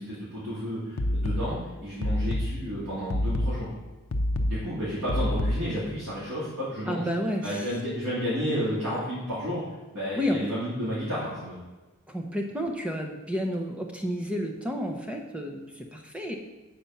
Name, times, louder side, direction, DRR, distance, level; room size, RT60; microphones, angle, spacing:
voice 1, 0.0-3.7 4.5-7.1 7.4-9.6 9.9-11.6, equal, 90° right, -10 dB, 2.6 m, -31 dB
sound 1, 1.0-6.0, left 1 dB, 70° left, 0.6 m, -28 dB
voice 2, 6.9-7.6 10.1-10.4 12.1-16.3, equal, 5° right, 2 dB, 0.7 m, -31 dB
8.3 x 4.3 x 5.7 m, 1.2 s
head